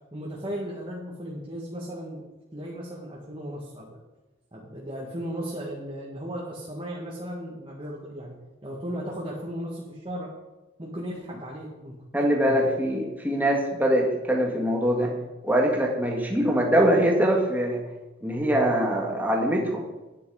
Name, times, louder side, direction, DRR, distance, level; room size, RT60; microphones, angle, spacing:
voice 1, 0.1-2.3 2.5-3.9 4.5-10.3 10.8-12.7, equal, 25° right, -4 dB, 1.8 m, -36 dB
voice 2, 12.1-15.1 15.4-17.8 18.2-19.8, equal, 10° right, -1 dB, 1.9 m, -23 dB
12.5 x 9.7 x 5.0 m, 1.1 s
head